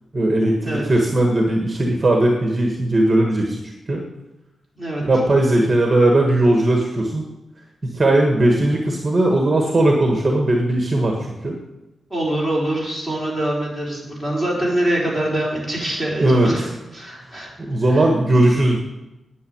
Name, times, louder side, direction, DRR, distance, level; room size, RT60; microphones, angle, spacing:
voice 1, 0.1-3.6 3.9-4.0 5.0-7.2 7.8-11.2 11.4-11.6 16.2-16.5 17.6-18.8, right 1 dB, 20° right, 2 dB, 1.6 m, -18 dB
voice 2, 12.1-16.7 16.9-17.5 17.8-18.1, right 1 dB, 10° left, -4 dB, 4.5 m, -24 dB
9.5 x 9.5 x 8.8 m, 1.0 s
wide cardioid pair, 155°, 0 cm